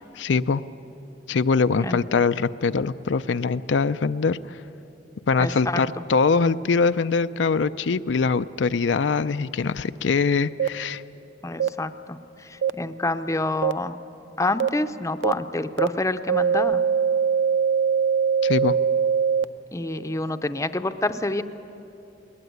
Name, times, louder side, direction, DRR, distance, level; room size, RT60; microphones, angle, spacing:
voice 1, 0.2-0.6 1.3-4.4 5.3-11.0 18.4-18.8, left 4 dB, 85° left, 11 dB, 0.5 m, -23 dB
voice 2, 5.4-5.8 11.4-14.0 14.4-16.8 19.7-21.4, left 2 dB, 15° left, 9 dB, 0.6 m, -27 dB
sound 1, 10.6-10.7 11.6-11.7 12.6-12.7 13.6-13.7 14.6-14.7 15.2-15.3 15.8-15.9 16.3-19.4, right 7 dB, 90° right, 0.5 m, -21 dB
20.5 x 20.0 x 9.4 m, 2.9 s
head